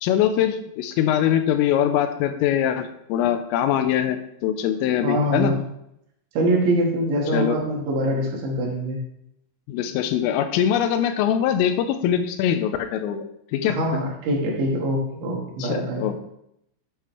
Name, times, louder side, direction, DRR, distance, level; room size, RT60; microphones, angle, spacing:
voice 1, 0.0-5.5 7.3-7.6 9.7-13.3 13.5-13.8 15.6-16.2, left 10 dB, 85° left, 9 dB, 3.3 m, -22 dB
voice 2, 5.0-5.6 6.4-9.0 13.6-16.1, right 1 dB, 70° right, -1 dB, 3.7 m, -24 dB
11.5 x 7.6 x 3.3 m, 0.78 s
omnidirectional pair, 5.9 m